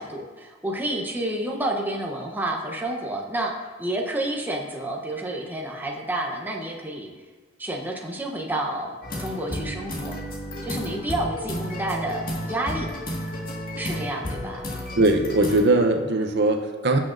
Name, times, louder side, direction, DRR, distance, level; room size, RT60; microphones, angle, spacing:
voice 1, 0.0-3.5 3.8-7.1 7.6-10.2 10.6-12.9 13.8-14.7, right 1 dB, 10° right, 0 dB, 0.9 m, -29 dB
sound 1, 9.0-15.7, equal, 50° left, 1.8 m, -32 dB
voice 2, 15.0-17.0, right 2 dB, 60° right, 5 dB, 0.7 m, -20 dB
16.5 x 6.1 x 2.6 m, 1.3 s
head